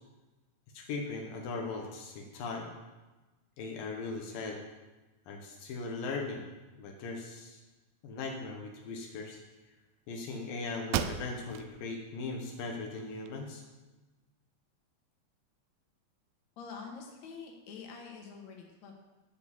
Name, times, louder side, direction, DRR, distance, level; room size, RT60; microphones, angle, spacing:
voice 1, 0.7-2.7 3.6-4.6 5.3-6.5 6.8-7.6 8.0-9.4 10.1-13.6, left 3 dB, 80° left, 1 dB, 2.9 m, -39 dB
sound 1, 10.3-10.4 10.9-11.7 12.2-12.3 12.8-13.7, right 9 dB, 80° right, 1.9 m, -36 dB
voice 2, 16.6-18.9, left 5 dB, 60° left, 1 dB, 2.8 m, -46 dB
14.0 x 5.3 x 7.3 m, 1.2 s
omnidirectional pair, 3.9 m